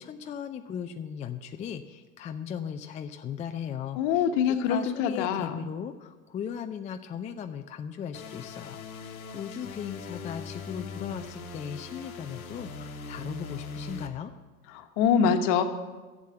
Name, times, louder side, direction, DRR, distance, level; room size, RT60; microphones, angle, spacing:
voice 1, 0.0-14.3, left 8 dB, 15° left, 7 dB, 0.4 m, -37 dB
voice 2, 3.9-5.6 14.7-15.6, left 7 dB, 50° left, 7 dB, 1.3 m, -25 dB
sound 1, 8.1-14.1, left 4 dB, 80° left, 1.2 m, -40 dB
11.5 x 7.4 x 7.7 m, 1.3 s
hypercardioid pair, 90°, 42 cm